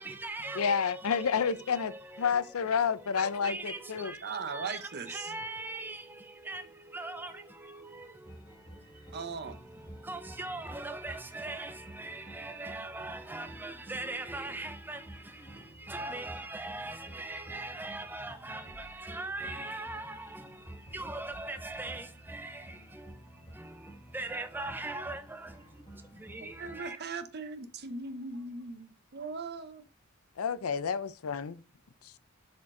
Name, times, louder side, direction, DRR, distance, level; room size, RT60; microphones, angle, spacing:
voice 1, 0.0-2.7 3.1-27.0, right 2 dB, 10° right, 0.4 m, -41 dB
voice 2, 0.6-4.1 30.4-31.6, left 6 dB, 85° left, 0.5 m, -30 dB
voice 3, 4.2-5.3 9.1-9.6 26.4-29.9, right 4 dB, 50° right, 0.8 m, -39 dB
sound 1, 8.2-26.8, right 1 dB, 25° left, 1.7 m, -51 dB
7.3 x 4.5 x 3.7 m
head